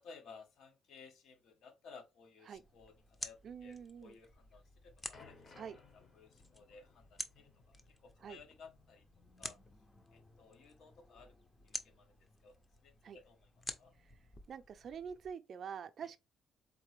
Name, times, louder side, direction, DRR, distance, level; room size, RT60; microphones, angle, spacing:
voice 1, 0.0-5.6 5.9-9.0 9.4-9.6 10.1-11.4 11.6-13.9 16.0-16.1, left 5 dB, 65° left, 1.0 m, -58 dB
sound 1, 2.5-15.3, left 2 dB, 20° left, 0.6 m, -51 dB
voice 2, 3.4-4.2 5.5-5.8 8.2-8.4 13.0-13.2 14.5-16.2, right 7 dB, 50° right, 0.4 m, -46 dB
sound 2, 4.7-9.4 9.7-9.8 10.6-10.7, left 4 dB, 35° left, 0.9 m, -62 dB
3.9 x 3.7 x 3.2 m
cardioid pair, 125°, 0 cm